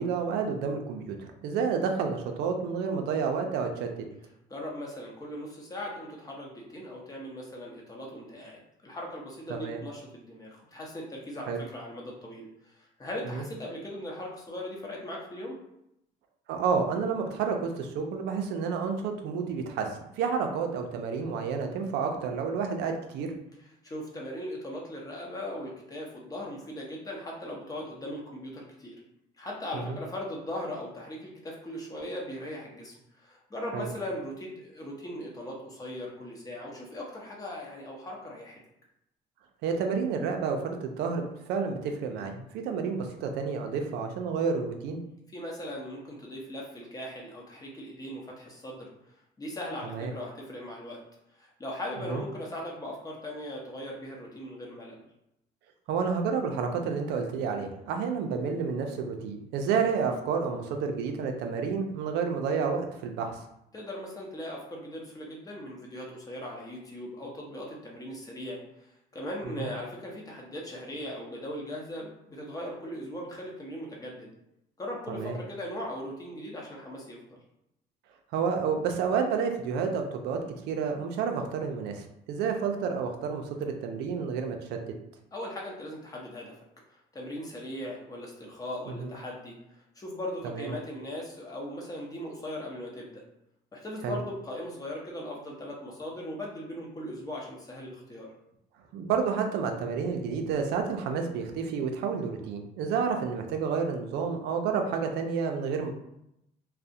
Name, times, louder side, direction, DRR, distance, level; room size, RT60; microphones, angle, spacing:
voice 1, 0.0-4.0 9.5-9.8 11.5-11.6 13.3-13.4 16.5-23.3 29.7-30.0 33.7-33.9 39.6-45.0 49.8-50.1 52.1-52.2 55.9-63.4 69.5-69.7 75.1-75.4 78.3-84.8 88.9-89.1 90.4-90.7 94.0-94.2 98.9-105.9, right 5 dB, 85° right, 4 dB, 0.4 m, -30 dB
voice 2, 4.5-15.6 23.8-29.0 29.4-38.6 45.3-48.9 49.4-51.0 51.4-55.0 63.7-74.3 74.8-77.4 85.3-86.6 86.9-93.2 93.7-98.3, left 1 dB, 20° left, -2 dB, 0.7 m, -39 dB
2.3 x 2.1 x 2.7 m, 0.81 s
cardioid pair, 110°, 17 cm